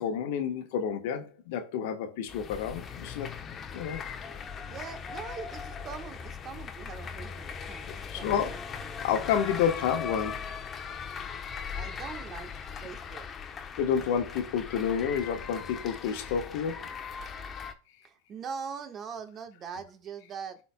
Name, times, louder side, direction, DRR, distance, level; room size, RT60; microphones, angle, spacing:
voice 1, 0.0-3.3 3.7-4.0 8.1-10.6 13.8-16.9, left 8 dB, 70° left, 1.2 m, -30 dB
sound 1, 2.3-17.7, left 6 dB, 30° left, 0.9 m, -39 dB
voice 2, 4.7-8.6 11.7-12.5 12.8-13.3 18.0-20.6, right 6 dB, 40° right, 1.4 m, -42 dB
12.0 x 4.2 x 2.2 m
hypercardioid pair, 100°, 0 cm